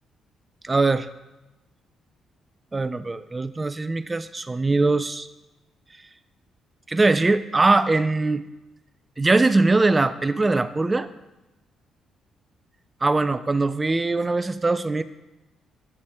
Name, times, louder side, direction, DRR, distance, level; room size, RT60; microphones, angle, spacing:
voice 1, 0.6-1.1 2.7-5.3 6.9-8.4 9.2-11.1 13.0-15.0, right 3 dB, 20° right, 13 dB, 0.4 m, -21 dB
9.7 x 8.0 x 3.5 m, 1.0 s
cardioid pair, 90°, 0 cm